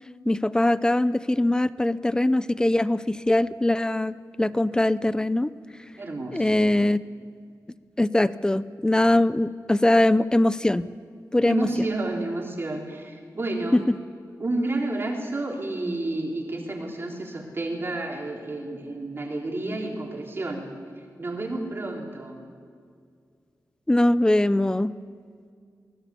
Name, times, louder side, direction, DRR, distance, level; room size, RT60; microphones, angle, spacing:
voice 1, 0.3-5.5 6.3-7.0 8.0-10.9 11.3-11.7 13.7-14.0 23.9-24.9, left 1 dB, 10° left, 16 dB, 0.6 m, -22 dB
voice 2, 6.0-6.7 11.4-13.8 14.4-22.4, right 2 dB, 40° right, 0 dB, 3.7 m, -30 dB
23.5 x 18.5 x 8.4 m, 2.2 s
wide cardioid pair, 145°, 6 cm